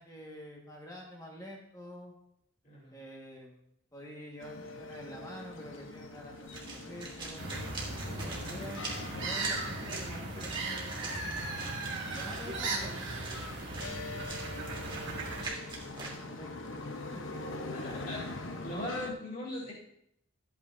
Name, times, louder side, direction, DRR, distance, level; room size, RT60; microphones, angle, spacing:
voice 1, 0.0-2.1 2.9-3.6 3.9-7.5 8.0-8.9 9.2-11.2 12.0-13.1 15.1-15.6 16.0-17.3, equal, 20° left, -1 dB, 1.6 m, -47 dB
voice 2, 2.6-3.0 17.7-19.7, left 1 dB, 45° left, -5 dB, 3.7 m, -40 dB
sound 1, 4.4-19.1, left 2 dB, 80° left, 0.9 m, -44 dB
sound 2, 6.4-16.1, right 3 dB, 25° right, 1.7 m, -44 dB
sound 3, 7.4-15.4, right 2 dB, 70° right, 2.1 m, -37 dB
13.5 x 8.4 x 2.7 m, 0.76 s
head